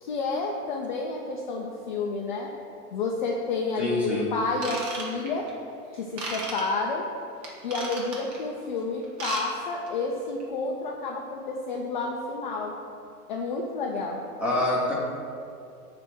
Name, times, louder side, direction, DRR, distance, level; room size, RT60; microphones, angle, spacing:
voice 1, 0.0-2.5 2.9-5.5 5.9-7.1 7.6-12.7 13.3-14.2, left 3 dB, 35° left, -1 dB, 0.4 m, -30 dB
voice 2, 3.8-4.3 14.4-14.9, left 2 dB, 5° right, -6 dB, 0.9 m, -26 dB
Ratchet pawl / Tools, 4.5-5.5 6.2-6.6 7.4-8.4 9.0-9.4 9.7-9.9 10.4-10.5, right 2 dB, 50° right, 1.6 m, -34 dB
7.4 x 3.4 x 6.1 m, 2.4 s
hypercardioid pair, 150°, 45 cm